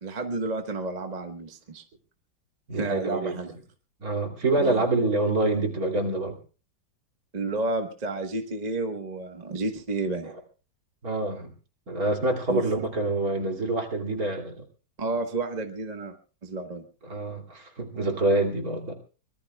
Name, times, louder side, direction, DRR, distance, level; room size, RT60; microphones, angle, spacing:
voice 1, 0.0-1.8 2.7-3.6 4.6-4.9 7.3-10.3 12.5-12.6 15.0-16.1 16.4-16.8, right 3 dB, 25° right, 4 dB, 1.1 m, -31 dB
voice 2, 2.7-3.4 4.0-6.4 11.0-11.5 11.9-14.6 17.1-18.9, right 2 dB, 45° right, 1 dB, 3.1 m, -26 dB
24.5 x 19.5 x 2.3 m, 0.36 s
omnidirectional pair, 2.1 m